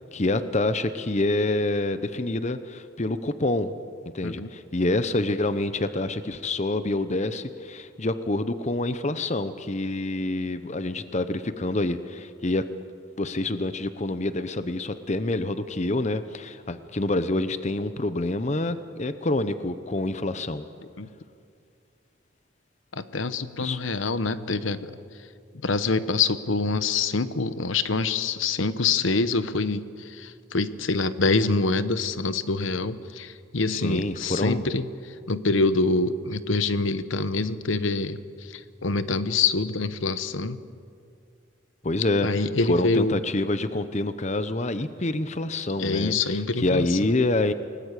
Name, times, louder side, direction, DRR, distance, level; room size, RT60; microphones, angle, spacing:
voice 1, 0.1-3.7 4.1-12.7 13.2-20.6 23.6-23.8 33.7-34.7 41.8-47.5, left 2 dB, 35° left, 12 dB, 0.8 m, -27 dB
voice 2, 22.9-24.9 25.6-40.6 42.2-43.2 45.8-47.1, left 3 dB, 75° left, 13 dB, 1.0 m, -26 dB
29.5 x 19.0 x 8.3 m, 2.4 s
head